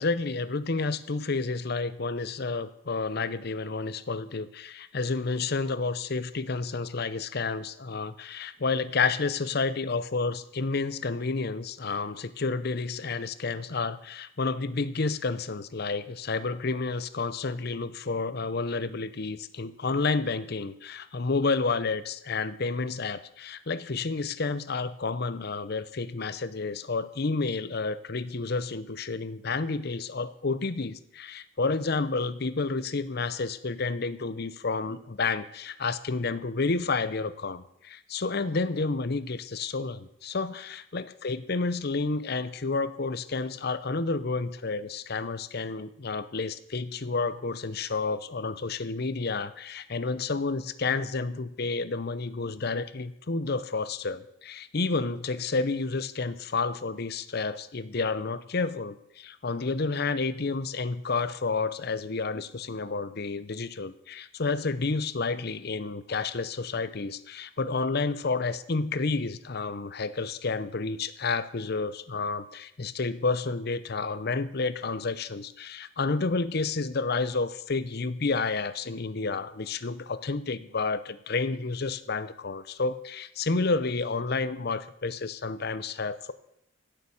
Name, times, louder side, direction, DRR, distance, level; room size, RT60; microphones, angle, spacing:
voice 1, 0.0-86.3, left 4 dB, 55° left, 14 dB, 0.7 m, -30 dB
16.0 x 6.9 x 7.1 m, 0.74 s
head